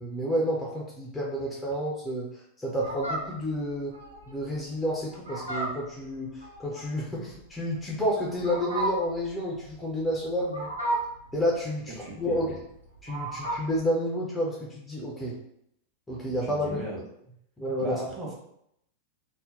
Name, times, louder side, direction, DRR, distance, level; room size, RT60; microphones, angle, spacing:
voice 1, 0.0-2.3 2.6-3.9 4.3-10.7 11.3-12.5 13.0-15.4 16.1-16.8 17.6-18.0, equal, 10° left, -3 dB, 0.6 m, -30 dB
Fowl, 2.7-13.8, right 2 dB, 85° right, 0.8 m, -35 dB
voice 2, 12.0-12.6 16.4-17.0 17.8-18.4, right 2 dB, 20° right, -3 dB, 1.1 m, -37 dB
2.8 x 2.1 x 3.7 m, 0.76 s
figure-of-eight pair, 90°, 0 cm